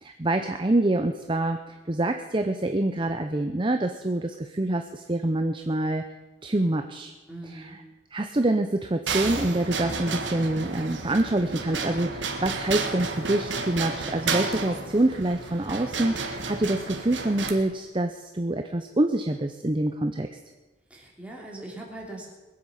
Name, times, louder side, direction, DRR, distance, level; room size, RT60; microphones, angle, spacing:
voice 1, 0.0-6.0 6.4-7.1 7.4-7.8 8.1-20.3, right 1 dB, 25° right, 6 dB, 0.6 m, -26 dB
voice 2, 7.3-7.8 20.9-22.3, right 1 dB, 5° right, -2 dB, 3.1 m, -40 dB
sound 1, 9.1-17.5, right 4 dB, 75° right, 1.7 m, -31 dB
21.5 x 8.1 x 7.2 m, 1.2 s
head